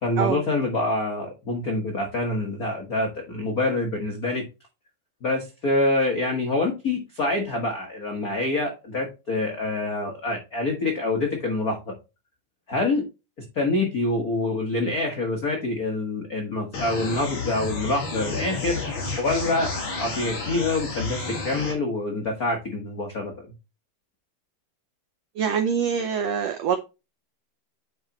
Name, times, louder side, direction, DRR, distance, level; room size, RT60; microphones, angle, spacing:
voice 1, 0.0-4.4 5.2-11.9 12.7-13.0 13.5-19.7 20.0-23.5, left 2 dB, 65° left, 2 dB, 0.8 m, -26 dB
sound 1, 16.7-21.7, left 3 dB, 40° left, 2.8 m, -31 dB
voice 2, 25.4-26.8, right 7 dB, 85° right, 7 dB, 1.5 m, -24 dB
8.7 x 4.8 x 2.9 m, 0.27 s
omnidirectional pair, 3.9 m